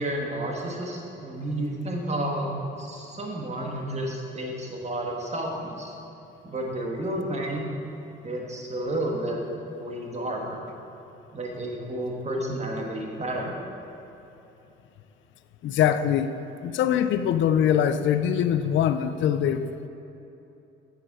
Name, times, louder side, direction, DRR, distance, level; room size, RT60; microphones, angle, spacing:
voice 1, 0.0-2.5 2.8-5.9 6.4-7.6 8.2-9.4 9.7-10.7 11.3-13.5, right 1 dB, 35° right, 0 dB, 1.5 m, -31 dB
voice 2, 15.6-16.3 16.6-19.9, left 9 dB, 70° left, 11 dB, 0.4 m, -23 dB
8.1 x 6.7 x 4.8 m, 2.9 s
cardioid pair, 90°, 20 cm